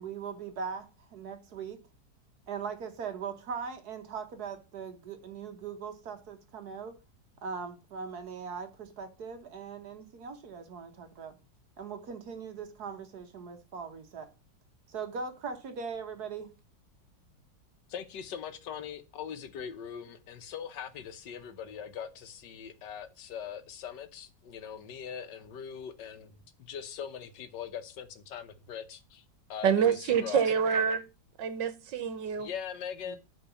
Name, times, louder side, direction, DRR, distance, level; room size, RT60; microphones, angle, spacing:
voice 1, 0.0-1.8 2.5-7.0 7.4-11.4 11.8-14.3 14.9-16.5 33.1-33.2, right 6 dB, 65° right, 1.6 m, -40 dB
voice 2, 17.9-29.2 29.5-30.5 32.4-33.2, left 8 dB, 80° left, 1.6 m, -41 dB
voice 3, 29.6-31.0 31.4-32.5, right 7 dB, 85° right, 1.7 m, -27 dB
8.4 x 4.1 x 6.9 m
omnidirectional pair, 1.9 m